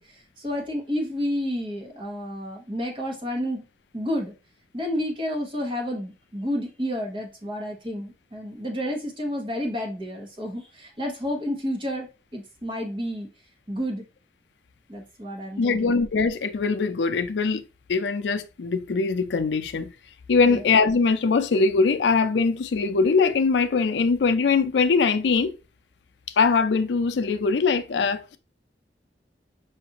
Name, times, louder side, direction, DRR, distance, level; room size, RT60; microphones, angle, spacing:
voice 1, 0.0-3.6 3.9-4.3 4.7-13.3 13.7-14.0 14.9-15.9 20.4-20.6, equal, 30° right, 1.0 m, -30 dB
voice 2, 15.6-17.6 17.9-19.9 20.3-25.5 26.4-28.4, left 4 dB, 90° left, 0.4 m, -22 dB
5.7 x 2.5 x 2.9 m
head